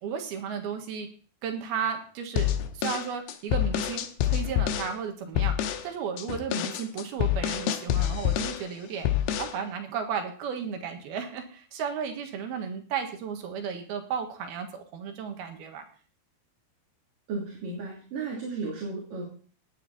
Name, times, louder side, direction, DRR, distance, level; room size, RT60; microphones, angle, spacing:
voice 1, 0.0-1.1 1.4-9.1 9.4-15.8, right 7 dB, 75° right, 5 dB, 3.3 m, -34 dB
sound 1, 2.4-4.9 5.4-5.9 6.2-8.7 9.0-9.6, left 11 dB, 85° left, 3.0 m, -27 dB
voice 2, 17.3-19.2, right 3 dB, 60° right, -3 dB, 4.5 m, -34 dB
18.0 x 9.5 x 4.2 m, 0.41 s
omnidirectional pair, 4.6 m